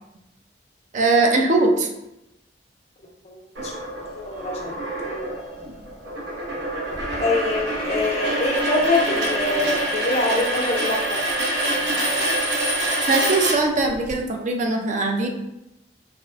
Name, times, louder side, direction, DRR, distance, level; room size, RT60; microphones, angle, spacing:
voice 1, 0.9-1.9 13.1-15.3, right 2 dB, 45° right, 3 dB, 0.4 m, -20 dB
voice 2, 3.2-3.7 4.1-4.7 5.0-5.4 7.2-11.2, left 2 dB, 35° left, 0 dB, 0.4 m, -25 dB
sound 1, 3.6-14.1, right 1 dB, 80° right, 1.0 m, -26 dB
3.4 x 2.3 x 2.3 m, 0.90 s
head